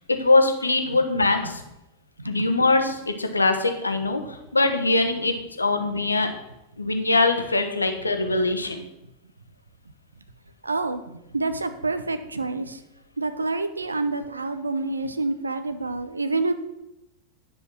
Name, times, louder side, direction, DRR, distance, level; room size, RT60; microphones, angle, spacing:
voice 1, 0.1-1.6 2.2-6.3 6.8-8.8, left 2 dB, 80° left, 6 dB, 1.0 m, -22 dB
voice 2, 10.6-12.8 13.2-16.5, right 3 dB, 80° right, 10 dB, 0.7 m, -27 dB
9.9 x 5.1 x 5.9 m, 0.90 s
figure-of-eight pair, 90°, 0 cm